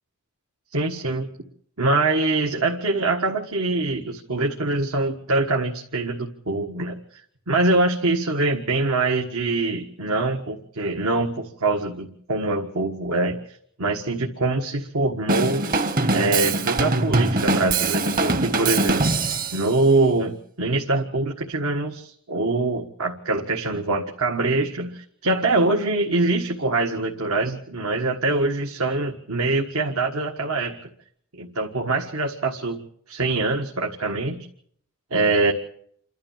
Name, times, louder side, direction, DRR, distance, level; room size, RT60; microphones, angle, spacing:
voice 1, 0.7-1.3 1.8-7.0 7.5-15.6 16.1-19.0 19.5-30.8 31.3-32.8 33.1-34.5 35.1-35.5, right 2 dB, 80° right, 2 dB, 1.7 m, -24 dB
Drum kit / Drum, 15.3-19.7, right 3 dB, 40° right, 1.1 m, -22 dB
28.5 x 12.5 x 7.3 m, 0.66 s
head